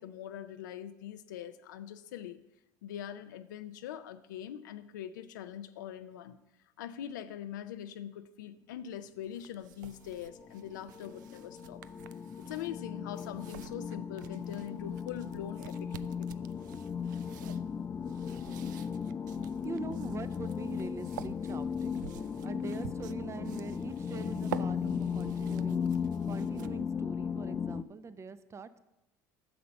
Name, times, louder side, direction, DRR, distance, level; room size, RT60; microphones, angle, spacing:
voice 1, 0.0-2.4 2.8-6.4 6.8-11.8 12.4-15.9 16.2-16.5, left 10 dB, 85° left, 9 dB, 0.5 m, -42 dB
sound 1, 9.2-27.0, right 11 dB, 90° right, 0.4 m, -49 dB
sound 2, 10.1-27.8, left 6 dB, 25° left, 0.4 m, -36 dB
voice 2, 18.9-25.9 26.2-28.8, right 4 dB, 30° right, 13 dB, 0.7 m, -44 dB
10.0 x 6.8 x 5.3 m, 0.91 s
hypercardioid pair, 80°, 10 cm